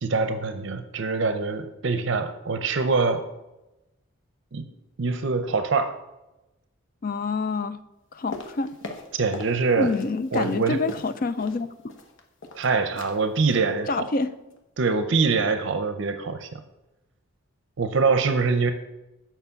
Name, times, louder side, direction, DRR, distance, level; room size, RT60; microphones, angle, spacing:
voice 1, 0.0-3.2 4.5-4.7 5.0-6.0 9.1-9.9 10.3-10.8 12.5-14.1 14.8-16.5 17.8-18.7, right 4 dB, 60° right, 0.6 m, -24 dB
voice 2, 7.0-7.8 8.1-8.8 9.8-11.7 13.9-14.3, left 3 dB, 40° left, 0.4 m, -27 dB
sound 1, 8.3-9.6 9.8-11.6 11.9-12.7 13.0-13.2 13.5-13.7 14.0-14.2 14.5-14.6, left 2 dB, 60° left, 1.1 m, -39 dB
6.9 x 5.8 x 6.9 m
head